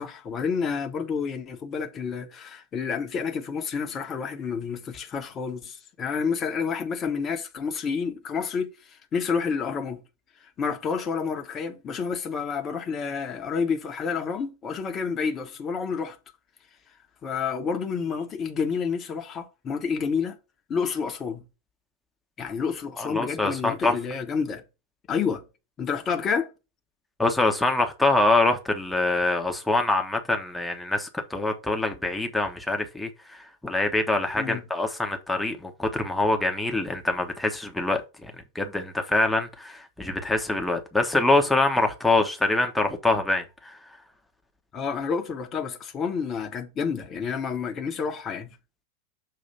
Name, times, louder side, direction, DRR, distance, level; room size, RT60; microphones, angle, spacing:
voice 1, 0.0-10.0 10.4-16.2 17.2-20.4 20.7-21.4 22.4-24.6 25.1-25.4 25.8-26.5 34.4-34.7 44.7-48.6, left 6 dB, 25° left, 1.1 m, -29 dB
voice 2, 23.0-24.0 27.2-43.8, left 2 dB, 5° left, 1.1 m, -25 dB
6.7 x 3.0 x 5.6 m
figure-of-eight pair, 90°, 0 cm